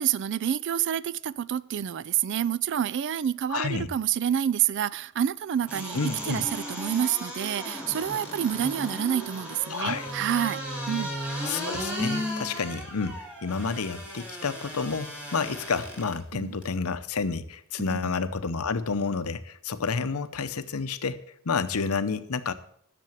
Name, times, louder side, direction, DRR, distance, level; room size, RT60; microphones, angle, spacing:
voice 1, 0.0-11.2 16.4-16.5 17.9-18.2, right 9 dB, 55° right, 0.3 m, -28 dB
voice 2, 3.5-3.9 5.9-6.5 9.7-10.1 11.5-22.5, left 5 dB, 85° left, 0.8 m, -30 dB
sound 1, 5.6-16.1 16.6-16.7, equal, 5° right, 3.1 m, -35 dB
10.5 x 6.9 x 7.3 m
head